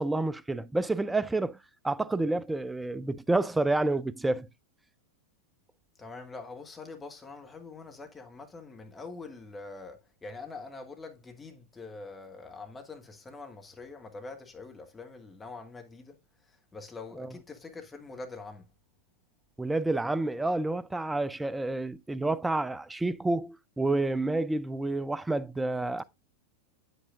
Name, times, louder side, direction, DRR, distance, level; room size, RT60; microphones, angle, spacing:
voice 1, 0.0-1.6 1.8-4.5 17.2-17.3 19.6-26.0, right 2 dB, 5° right, 0.4 m, -29 dB
voice 2, 6.0-16.2 16.5-18.7, left 3 dB, 15° left, 1.4 m, -44 dB
8.4 x 7.9 x 2.4 m
figure-of-eight pair, 90°, 0 cm